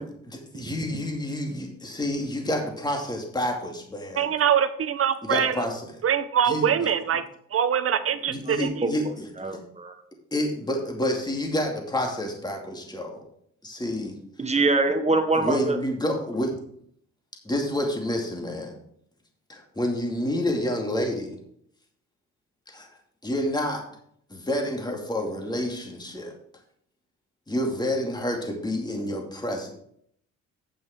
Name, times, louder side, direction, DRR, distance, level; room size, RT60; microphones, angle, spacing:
voice 1, 0.0-4.3 5.2-5.9 6.5-6.7 8.3-9.3 9.5-9.6 10.3-13.2 13.6-14.2 15.4-16.5 17.4-18.7 19.5-21.4 22.7-22.9 23.2-23.8 24.3-26.3 27.5-29.7, left 1 dB, 15° left, 1 dB, 2.5 m, -29 dB
voice 2, 4.2-5.6 6.0-7.2 7.5-8.9, right 8 dB, 50° right, 12 dB, 1.0 m, -24 dB
voice 3, 9.4-9.9 14.4-15.8, right 3 dB, 20° right, 6 dB, 1.4 m, -24 dB
9.1 x 7.0 x 4.9 m, 0.66 s
cardioid pair, 90°, 30 cm